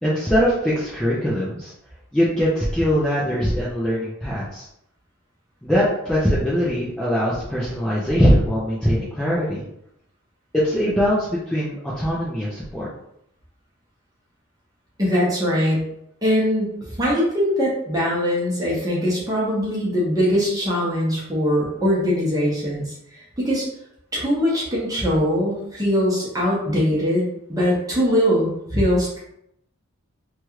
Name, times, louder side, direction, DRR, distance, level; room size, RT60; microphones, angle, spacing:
voice 1, 0.0-1.7 2.1-4.7 5.6-9.6 10.5-12.9, equal, 5° left, -9 dB, 0.4 m, -21 dB
voice 2, 15.0-15.8 16.2-22.9 23.4-23.6 24.1-27.2 27.5-29.2, equal, 15° right, -5 dB, 0.8 m, -21 dB
3.0 x 2.4 x 3.0 m, 0.76 s
head